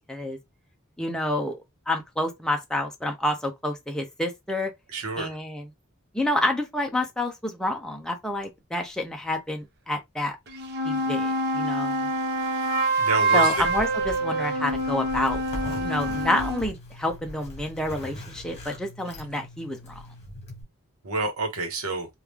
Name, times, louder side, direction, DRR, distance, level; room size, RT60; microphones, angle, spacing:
voice 1, 1.0-1.6 1.9-4.7 5.2-5.6 6.1-10.4 10.8-12.0 13.3-15.4 15.7-20.0, left 1 dB, 5° left, 0.5 m, -28 dB
voice 2, 4.9-5.4 13.0-13.6 21.0-22.1, right 3 dB, 85° right, 1.0 m, -28 dB
sound 1, 10.5-16.7, right 2 dB, 50° right, 0.8 m, -26 dB
Zipper (clothing), 13.3-20.6, equal, 30° left, 1.2 m, -40 dB
3.0 x 2.4 x 3.4 m
head